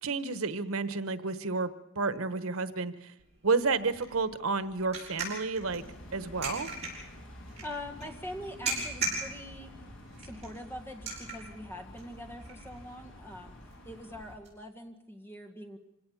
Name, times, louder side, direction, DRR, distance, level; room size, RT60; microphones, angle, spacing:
voice 1, 0.0-1.7 1.9-3.1 3.4-5.8 6.1-6.7, right 4 dB, 90° right, 13 dB, 1.2 m, -30 dB
sound 1, 3.2-14.5, right 3 dB, 30° right, 7.5 m, -41 dB
sound 2, 5.6-14.3, left 1 dB, 65° left, 3.6 m, -49 dB
voice 2, 7.6-9.7 10.2-13.6 13.9-15.8, left 1 dB, 10° left, 4 dB, 1.8 m, -43 dB
26.0 x 17.5 x 7.1 m, 0.88 s
head